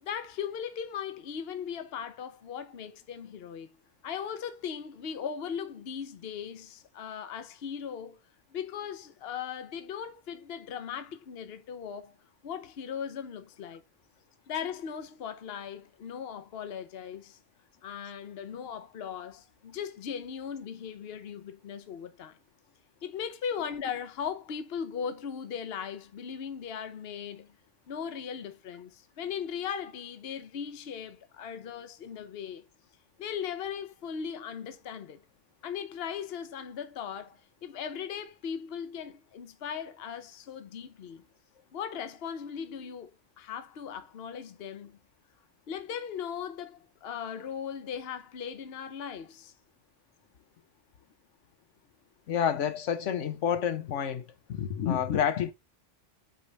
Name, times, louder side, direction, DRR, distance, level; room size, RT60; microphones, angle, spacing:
voice 1, 0.0-3.8 4.0-8.2 8.5-12.2 12.4-13.8 14.5-17.4 17.8-22.4 23.0-27.5 27.9-32.7 33.2-35.2 35.6-41.3 41.7-45.0 45.7-49.5, left 7 dB, 60° left, 1.0 m, -38 dB
voice 2, 52.3-54.2 54.5-55.5, left 8 dB, 85° left, 1.1 m, -28 dB
8.1 x 3.3 x 3.9 m
omnidirectional pair, 1.2 m